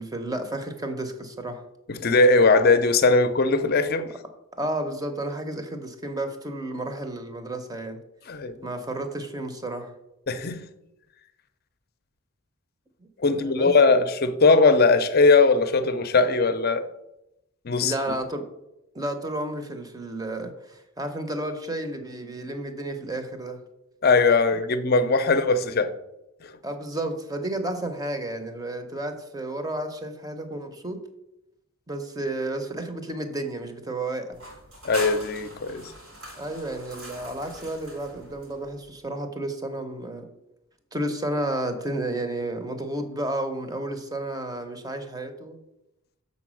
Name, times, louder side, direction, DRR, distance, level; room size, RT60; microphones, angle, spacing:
voice 1, 0.0-1.6 4.6-8.0 8.6-9.9 13.2-13.7 17.8-18.5 18.9-23.6 26.6-31.0 31.9-34.5 36.3-40.3 40.9-45.6, right 1 dB, 15° right, 0.7 m, -32 dB
voice 2, 1.9-4.1 8.3-8.6 10.3-10.6 13.2-16.8 17.6-18.2 24.0-25.9 26.4-26.5 34.8-35.9, left 3 dB, 45° left, 0.5 m, -20 dB
sound 1, 34.3-38.9, right 1 dB, 80° right, 2.7 m, -42 dB
6.7 x 4.1 x 6.2 m
head